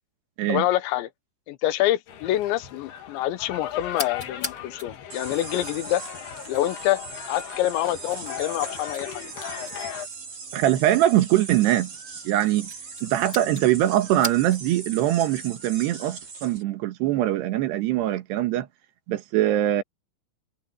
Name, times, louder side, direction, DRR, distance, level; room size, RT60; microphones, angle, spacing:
voice 1, 0.5-1.1 1.5-6.0 6.5-7.0 7.3-9.2, left 14 dB, 90° left, 3.4 m, -26 dB
sound 1, 2.1-10.1, left 10 dB, 65° left, 4.0 m, -38 dB
sound 2, 3.9-14.8, left 3 dB, 20° left, 2.5 m, -42 dB
sound 3, 5.1-16.6, right 5 dB, 40° right, 5.7 m, -40 dB
voice 2, 10.5-11.9 12.3-12.7 13.0-18.7 19.1-19.8, right 13 dB, 75° right, 3.5 m, -22 dB
omnidirectional pair, 5.0 m